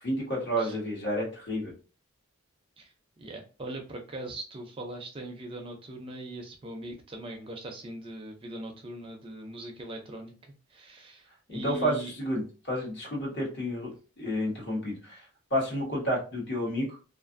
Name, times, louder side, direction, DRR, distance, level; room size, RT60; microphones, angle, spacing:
voice 1, 0.0-1.7 11.5-12.4 12.7-13.9 14.2-15.2 15.5-16.9, equal, 50° left, -2 dB, 1.1 m, -30 dB
voice 2, 2.8-10.3 10.7-12.1, right 1 dB, 25° right, 3 dB, 0.4 m, -40 dB
2.5 x 2.4 x 2.5 m, 0.36 s
head